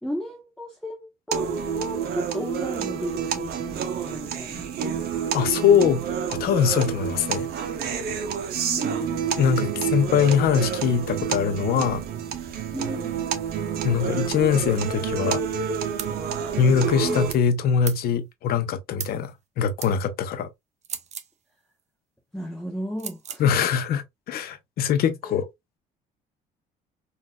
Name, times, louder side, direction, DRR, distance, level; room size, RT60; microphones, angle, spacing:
voice 1, 0.0-4.7 8.6-9.8 12.7-13.2 17.0-17.2 22.3-23.4 25.2-25.4, equal, 5° left, 0.7 m, -34 dB
sound 1, 1.3-17.3, right 7 dB, 65° right, 0.8 m, -29 dB
voice 2, 5.3-7.5 9.4-12.0 13.8-15.4 16.6-20.5 23.4-25.4, left 7 dB, 65° left, 0.7 m, -22 dB
sound 2, 16.0-16.2 17.8-18.0 19.0-19.2 19.8-19.9 20.8-21.3 23.0-23.4, right 8 dB, 40° right, 0.5 m, -35 dB
4.0 x 2.6 x 2.3 m
cardioid pair, 110°, 17 cm